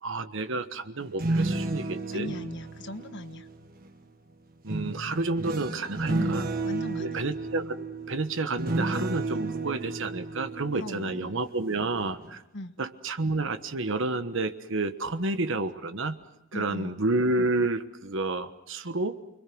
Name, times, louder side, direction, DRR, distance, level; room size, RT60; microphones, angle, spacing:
voice 1, 0.0-2.3 4.6-6.5 7.0-12.4 12.8-16.2 16.5-19.2, right 2 dB, 65° right, 10 dB, 1.3 m, -30 dB
sound 1, 1.0-3.9 4.7-11.6 12.0-12.3, right 2 dB, 45° right, 1.5 m, -32 dB
voice 2, 2.1-3.5 6.1-7.3 10.7-11.4 12.5-12.8 16.5-17.0, left 1 dB, 60° left, 8 dB, 1.5 m, -38 dB
29.5 x 22.5 x 6.2 m, 0.87 s
head